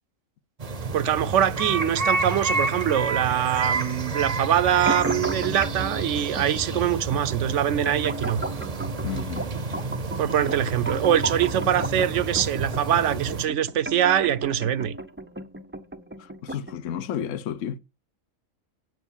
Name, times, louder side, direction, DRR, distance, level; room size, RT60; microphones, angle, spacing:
sound 1, 0.6-13.5, right 3 dB, 35° right, 0.7 m, -30 dB
voice 1, 0.9-8.4 10.2-15.0, right 10 dB, 65° right, 1.0 m, -23 dB
sound 2, 4.9-16.9, right 2 dB, 15° right, 0.4 m, -35 dB
voice 2, 9.0-9.5 16.2-17.8, left 9 dB, 70° left, 1.1 m, -32 dB
9.4 x 4.7 x 7.2 m
omnidirectional pair, 1.4 m